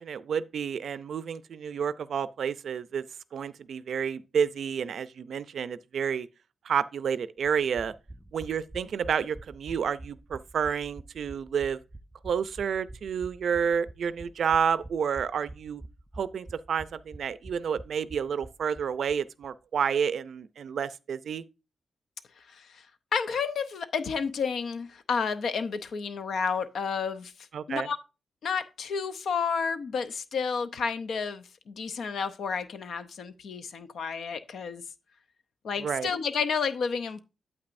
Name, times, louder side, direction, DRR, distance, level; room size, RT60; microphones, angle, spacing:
voice 1, 0.0-3.0 3.3-6.3 6.6-7.9 8.3-11.8 12.2-15.8 16.2-21.4 27.5-27.9 35.8-36.1, right 7 dB, 70° right, 0.4 m, -30 dB
sound 1, 7.4-19.2 19.4-19.5 19.8-19.9, right 1 dB, 10° right, 0.5 m, -47 dB
voice 2, 22.4-22.9 23.1-28.0 28.4-34.8 35.6-37.2, left 5 dB, 70° left, 0.7 m, -31 dB
8.7 x 8.2 x 2.5 m
wide cardioid pair, 125°, 0 cm